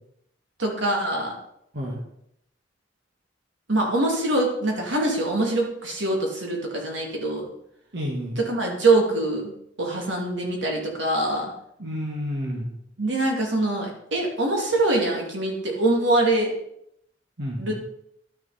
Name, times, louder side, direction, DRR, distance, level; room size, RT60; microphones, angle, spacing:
voice 1, 0.6-1.3 3.7-7.4 8.4-9.5 9.8-11.5 13.0-16.5 17.6-17.7, right 2 dB, 85° right, -1 dB, 2.7 m, -24 dB
voice 2, 7.9-8.4 11.8-12.7 17.4-17.7, equal, 65° right, -3 dB, 1.7 m, -30 dB
11.5 x 6.5 x 4.2 m, 0.76 s
head